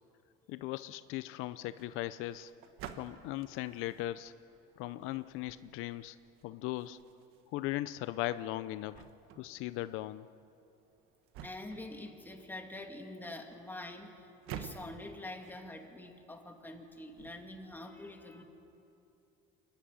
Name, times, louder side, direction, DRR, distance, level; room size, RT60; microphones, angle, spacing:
voice 1, 0.5-2.5 3.0-4.3 4.8-6.2 6.4-7.0 7.5-9.1 9.4-10.3, left 15 dB, 80° left, 14 dB, 0.6 m, -38 dB
sound 1, 1.7-17.8, right 8 dB, 75° right, 1.4 m, -53 dB
voice 2, 11.4-14.3 14.5-18.4, left 2 dB, 10° left, 3 dB, 2.3 m, -45 dB
25.0 x 11.5 x 10.0 m, 2.8 s
cardioid pair, 110°, 21 cm